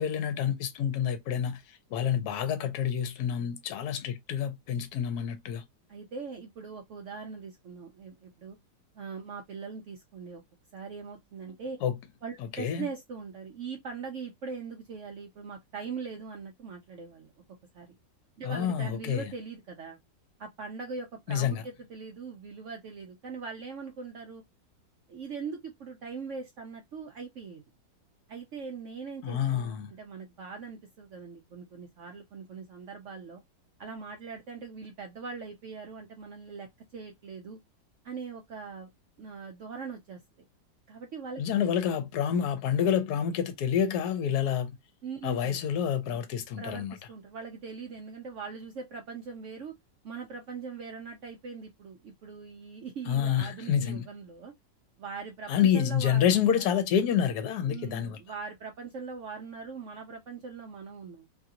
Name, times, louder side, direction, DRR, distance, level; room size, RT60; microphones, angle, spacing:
voice 1, 0.0-1.6 1.9-5.6 11.8-11.9 12.6-12.9 18.4-19.3 21.3-21.6 29.2-29.9 41.4-44.8 45.2-47.0 53.1-54.0 55.5-58.2, left 8 dB, 65° left, 1.1 m, -28 dB
voice 2, 5.9-8.6 8.9-10.4 10.7-11.8 12.2-17.3 17.7-17.9 18.4-20.0 20.4-24.4 25.1-27.6 28.3-33.4 33.8-37.6 38.0-38.9 39.2-40.2 40.9-41.7 45.0-45.6 46.6-49.8 50.0-54.5 55.0-56.7 57.7-61.3, right 5 dB, 80° right, 0.6 m, -41 dB
3.1 x 2.5 x 2.7 m
omnidirectional pair, 2.0 m